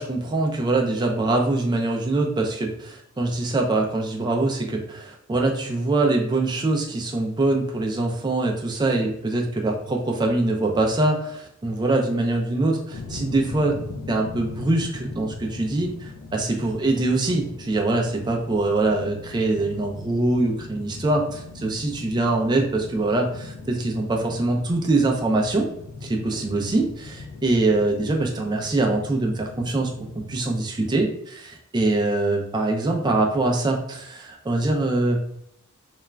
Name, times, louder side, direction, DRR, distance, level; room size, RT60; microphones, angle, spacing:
voice 1, 0.0-13.8 14.1-25.7 26.0-35.2, right 2 dB, 20° right, 1 dB, 0.3 m, -23 dB
sound 1, 12.9-30.6, left 3 dB, 80° left, 0.3 m, -40 dB
2.3 x 2.0 x 3.2 m, 0.73 s
head